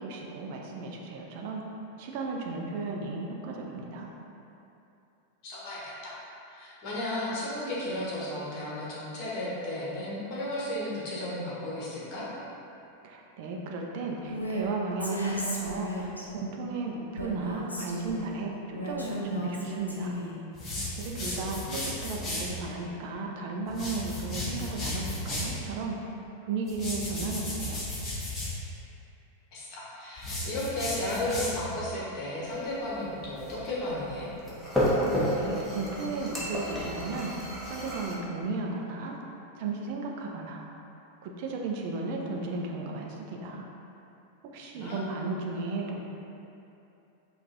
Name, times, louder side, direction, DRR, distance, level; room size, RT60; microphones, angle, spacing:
voice 1, 0.0-1.6 2.0-4.1 13.0-20.2 21.0-26.0 26.4-27.8 35.3-39.2 39.5-40.6 41.2-43.7 44.5-46.0, right 3 dB, 45° right, 0 dB, 0.6 m, -35 dB
voice 2, 5.4-6.1 6.5-12.3 21.2-21.5 29.5-34.3 44.7-45.0, left 1 dB, 45° left, -7 dB, 1.3 m, -34 dB
Female speech woman speaking, 14.3-14.7 15.0-16.3 17.2-18.3 18.8-20.4, equal, 85° left, 0.6 m, -34 dB
sound 1, 20.5-22.5 23.7-25.6 26.7-28.6 30.2-31.8, left 1 dB, 25° left, 1.1 m, -35 dB
sound 2, 32.4-38.1, equal, 5° left, 0.9 m, -32 dB
5.2 x 2.5 x 4.0 m, 2.9 s
figure-of-eight pair, 90°, 0 cm